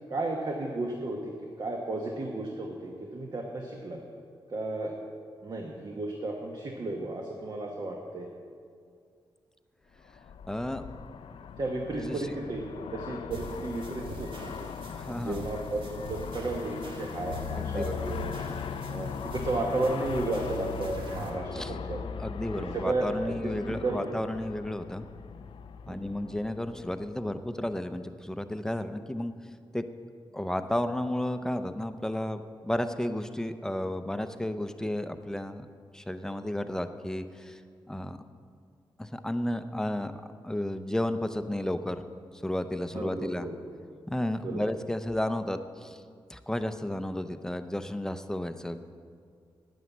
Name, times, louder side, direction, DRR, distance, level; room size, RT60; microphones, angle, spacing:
voice 1, 0.1-1.3 1.6-4.0 4.5-4.9 5.4-8.3 11.6-14.7 15.1-18.3 18.9-22.0 22.6-24.1 25.9-26.1 42.9-43.5 44.4-44.7, right 2 dB, 50° right, 0 dB, 1.2 m, -33 dB
Aircraft, 10.0-27.3, left 7 dB, 75° left, 0.5 m, -39 dB
voice 2, 10.5-10.8 11.9-12.2 14.9-15.4 17.6-18.1 21.5-21.7 22.2-25.1 25.9-29.3 29.7-29.9 30.3-35.7 35.9-37.6 37.9-38.2 39.0-40.1 40.4-42.0 42.3-43.5 44.1-46.0 46.3-48.8, left 1 dB, 5° left, 9 dB, 0.6 m, -32 dB
sound 1, 13.3-21.3, right 1 dB, 65° right, 1.8 m, -44 dB
9.4 x 9.4 x 7.2 m, 2.2 s
cardioid pair, 85°, 9 cm